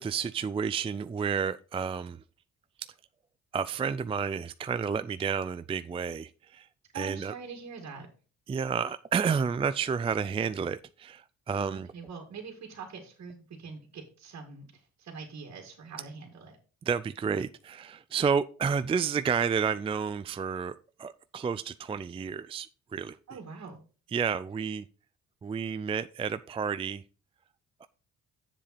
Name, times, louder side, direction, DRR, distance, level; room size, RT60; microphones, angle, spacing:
voice 1, 0.0-2.2 2.8-2.9 3.5-6.7 6.9-7.3 8.5-11.9 16.8-23.2 24.1-24.9 25.4-27.0 27.8-27.9, right 6 dB, 20° right, 13 dB, 0.4 m, -31 dB
voice 2, 6.9-8.1 11.7-16.6 23.3-23.8, right 5 dB, 60° right, 2 dB, 2.2 m, -44 dB
7.6 x 7.2 x 4.1 m, 0.36 s
cardioid pair, 90°, 30 cm